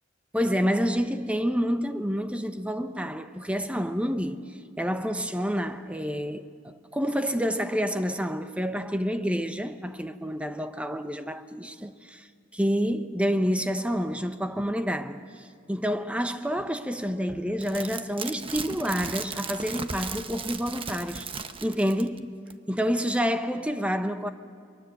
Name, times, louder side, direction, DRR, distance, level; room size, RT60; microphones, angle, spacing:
voice 1, 0.3-21.3 21.6-22.4 22.7-24.3, equal, 5° right, 0.9 m, -28 dB
sound 1, 17.6-22.2 22.5-22.6, right 5 dB, 30° right, 1.0 m, -36 dB
29.5 x 22.5 x 7.9 m
head